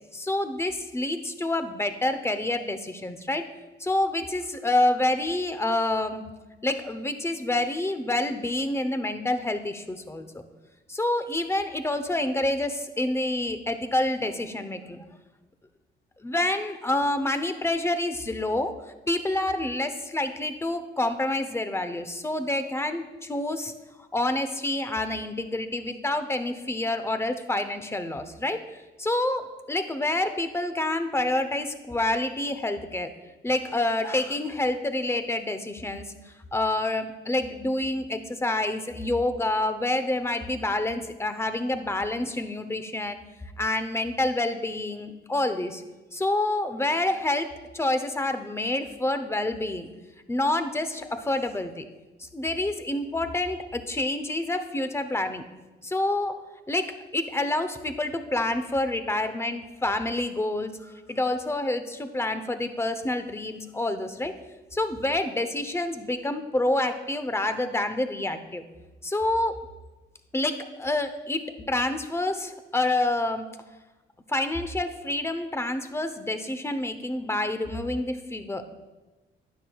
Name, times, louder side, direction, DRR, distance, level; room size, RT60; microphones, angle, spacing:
voice 1, 0.1-3.5 3.8-6.3 6.6-10.4 10.9-15.0 16.2-23.7 24.1-33.1 33.4-43.2 43.6-45.8 46.1-49.9 50.3-51.8 52.2-55.4 55.8-56.3 56.7-64.3 64.7-68.6 69.0-69.6 70.3-73.5 74.3-78.7, left 2 dB, 15° left, 9 dB, 0.8 m, -28 dB
12.5 x 9.8 x 2.4 m, 1.2 s
cardioid pair, 90°, 20 cm